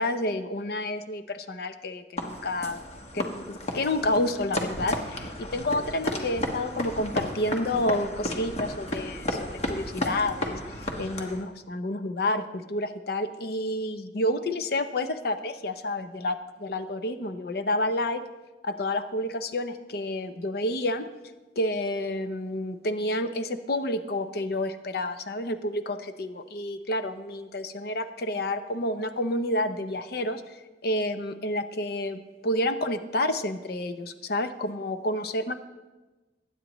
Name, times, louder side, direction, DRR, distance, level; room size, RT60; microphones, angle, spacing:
voice 1, 0.0-2.8 3.1-18.2 18.6-21.0 21.6-35.5, left 1 dB, 60° left, 10 dB, 0.7 m, -29 dB
sound 1, 2.2-11.4, left 1 dB, 40° left, 1.3 m, -33 dB
20.5 x 9.1 x 3.1 m, 1.2 s
head